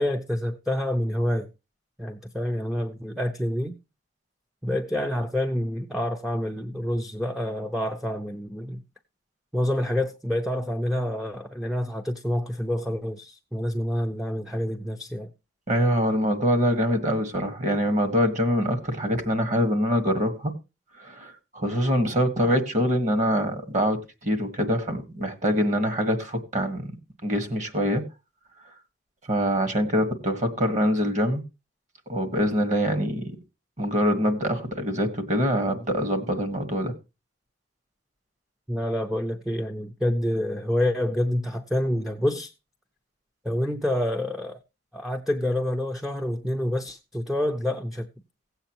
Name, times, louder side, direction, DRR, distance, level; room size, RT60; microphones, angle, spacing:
voice 1, 0.0-1.5 2.0-3.8 4.6-8.8 9.5-15.3 38.7-42.5 43.4-44.6 44.9-48.1, left 1 dB, ahead, 0.5 m, -27 dB
voice 2, 15.7-20.5 21.0-26.9 27.2-28.0 29.3-31.4 32.1-33.3 33.8-36.9, equal, 40° right, 1.6 m, -24 dB
17.0 x 8.0 x 2.9 m
head